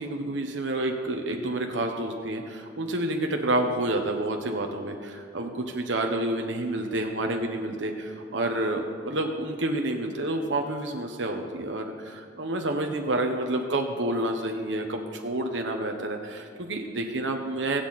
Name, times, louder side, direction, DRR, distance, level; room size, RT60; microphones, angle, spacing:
voice 1, 0.0-17.9, right 1 dB, 80° right, 3 dB, 1.1 m, -29 dB
22.5 x 8.1 x 4.2 m, 2.1 s
head